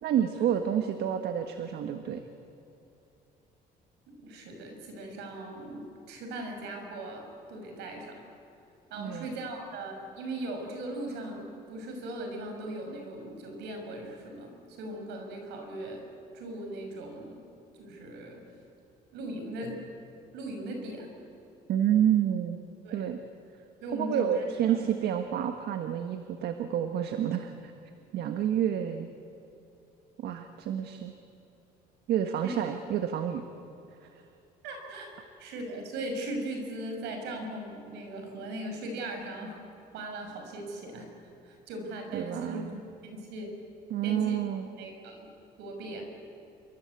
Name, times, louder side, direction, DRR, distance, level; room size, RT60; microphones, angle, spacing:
voice 1, 0.0-2.2 9.0-9.3 21.7-22.6 22.9-23.2 23.9-27.7 28.1-29.1 30.2-31.1 32.1-33.4 42.1-42.8 43.9-44.7, right 9 dB, 70° right, 7 dB, 1.6 m, -29 dB
voice 2, 4.1-8.2 8.9-16.0 16.3-17.4 17.8-18.4 19.1-19.8 20.3-21.1 22.8-23.0 23.8-24.8 32.4-32.5 34.6-35.1 35.4-39.6 39.9-41.1 41.4-43.5 44.0-44.4 44.8-45.3 45.6-46.0, right 1 dB, 85° right, 3 dB, 6.3 m, -39 dB
28.0 x 23.0 x 8.5 m, 2.9 s
cardioid pair, 110°, 17 cm